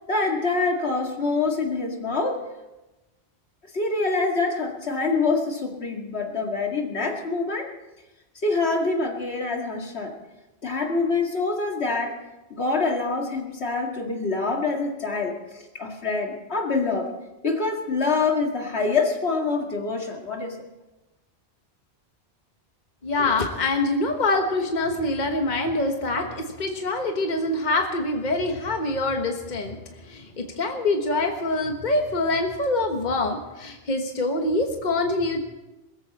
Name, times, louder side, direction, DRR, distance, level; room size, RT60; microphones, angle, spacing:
voice 1, 0.1-2.4 3.7-7.7 8.4-10.1 10.6-12.1 12.5-17.1 17.4-20.6, left 3 dB, 75° left, 2 dB, 2.3 m, -25 dB
voice 2, 23.0-29.8 30.0-35.4, left 2 dB, 45° left, 3 dB, 1.4 m, -25 dB
21.5 x 14.5 x 4.2 m, 1.0 s
omnidirectional pair, 1.1 m